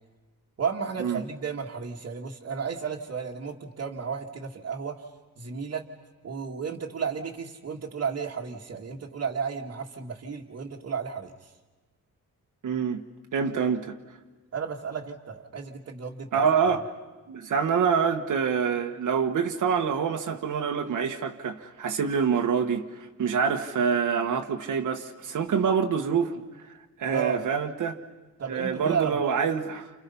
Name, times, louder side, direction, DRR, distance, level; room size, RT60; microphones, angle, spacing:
voice 1, 0.6-5.1 5.4-5.9 6.2-11.5 14.5-16.4 27.1-27.4 28.4-29.3, right 6 dB, 45° right, 2.0 m, -33 dB
voice 2, 12.6-13.0 13.3-14.0 16.3-16.9 17.3-28.0 28.5-29.9, right 6 dB, 70° right, 1.7 m, -26 dB
30.0 x 29.5 x 5.6 m
wide cardioid pair, 155°, 32 cm